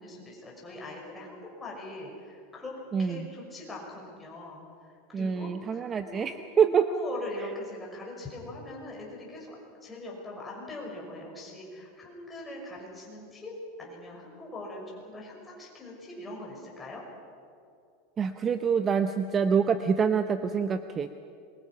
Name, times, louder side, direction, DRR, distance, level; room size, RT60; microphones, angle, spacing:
voice 1, 0.0-4.6 4.9-6.3 6.8-9.6 9.8-13.5 13.8-17.0, left 1 dB, 10° left, -2 dB, 6.1 m, -42 dB
voice 2, 2.9-3.3 5.1-6.9 18.2-21.1, right 6 dB, 20° right, 9 dB, 0.7 m, -26 dB
27.5 x 23.0 x 5.9 m, 2.5 s
supercardioid pair, 150°, 0 cm